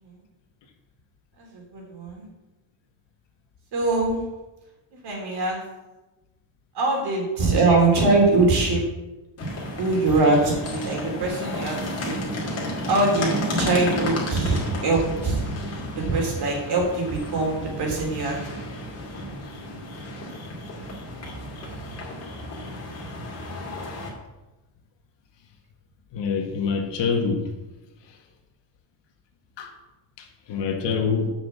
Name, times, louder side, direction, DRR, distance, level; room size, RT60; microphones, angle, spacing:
voice 1, 1.4-2.3 3.7-4.2 5.0-5.6 6.8-8.8 9.8-11.8 12.1-12.2 12.9-15.4 16.0-18.3, right 3 dB, 50° right, 3.6 m, -22 dB
sound 1, 9.4-24.1, left 1 dB, 30° left, 2.5 m, -32 dB
voice 2, 26.1-27.5 29.6-29.7 30.2-31.3, left 5 dB, 55° left, 1.6 m, -26 dB
7.5 x 6.2 x 7.3 m
cardioid pair, 145°, 50 cm